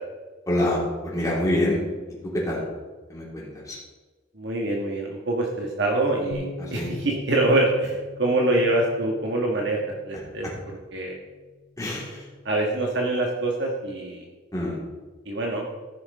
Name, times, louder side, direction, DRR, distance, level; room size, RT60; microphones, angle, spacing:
voice 1, 0.5-1.8 2.3-2.6 3.1-3.8 6.6-6.9 10.4-10.5 11.8-12.3 14.5-14.8, left 1 dB, 15° left, -6 dB, 3.4 m, -26 dB
voice 2, 4.4-9.8 10.0-10.5 10.9-11.2 12.4-14.3 15.2-15.7, right 2 dB, 55° right, 0 dB, 1.5 m, -25 dB
Bass guitar, 6.3-12.6, left 2 dB, 80° left, 1.7 m, -42 dB
14.5 x 5.9 x 5.4 m, 1.3 s
head